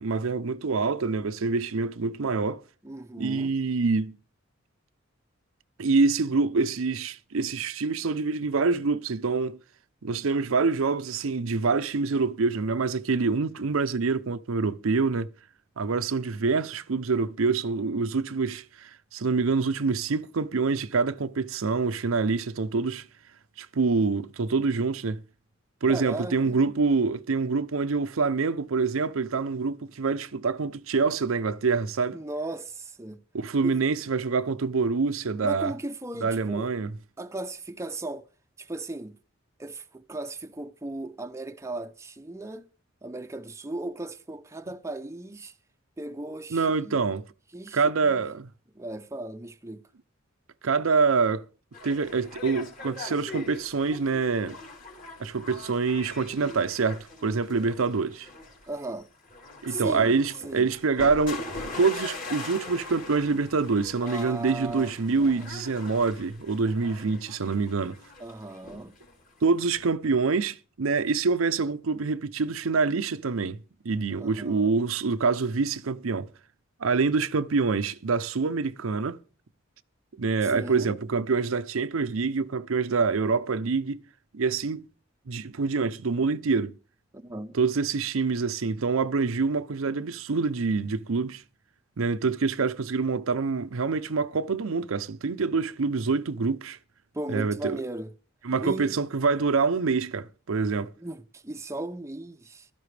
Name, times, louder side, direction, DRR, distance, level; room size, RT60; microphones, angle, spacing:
voice 1, 0.0-2.6 3.2-4.1 5.8-9.6 10.0-15.3 15.8-23.1 23.6-25.2 25.8-32.2 33.3-35.7 36.2-36.9 46.5-47.2 47.7-48.5 50.6-51.4 51.8-54.6 55.2-58.3 59.6-61.4 61.8-68.0 69.4-73.6 73.8-76.3 76.8-79.2 80.2-84.0 84.3-84.8 85.3-86.8 87.5-91.4 92.0-96.8 97.3-97.8 98.4-100.9, right 4 dB, 80° right, 0.6 m, -26 dB
voice 2, 2.8-3.5 25.9-26.6 32.1-33.2 33.6-33.8 35.4-36.7 37.2-38.3 38.6-39.2 39.6-42.7 43.0-45.6 46.0-47.1 47.5-48.2 48.7-49.9 58.7-59.1 59.7-60.2 60.4-60.7 64.0-65.5 68.2-68.9 74.1-74.7 80.4-81.0 87.1-87.6 97.1-98.1 98.6-99.0 101.0-102.7, right 2 dB, 15° right, 0.6 m, -37 dB
sound 1, 51.7-69.8, left 2 dB, 40° left, 3.4 m, -42 dB
15.5 x 12.5 x 3.3 m
head